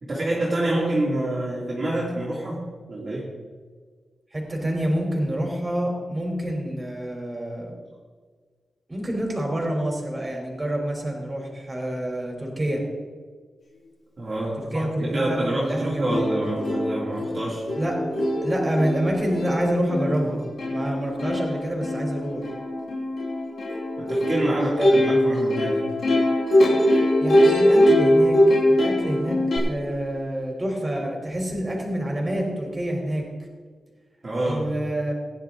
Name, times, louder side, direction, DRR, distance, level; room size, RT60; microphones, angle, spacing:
voice 1, 0.0-3.3 14.2-17.7 24.0-25.8 34.2-34.7, right 1 dB, 40° right, -6 dB, 2.6 m, -27 dB
voice 2, 4.3-7.7 8.9-12.8 14.6-16.3 17.7-18.0 18.4-22.4 24.4-25.1 27.2-28.4 28.7-33.2 34.4-35.2, right 1 dB, 20° right, 0 dB, 3.7 m, -27 dB
Plucked string instrument, 15.7-15.8 16.1-29.6, left 1 dB, 60° left, 3.4 m, -22 dB
16.5 x 10.0 x 3.8 m, 1.6 s
wide cardioid pair, 110°, 0 cm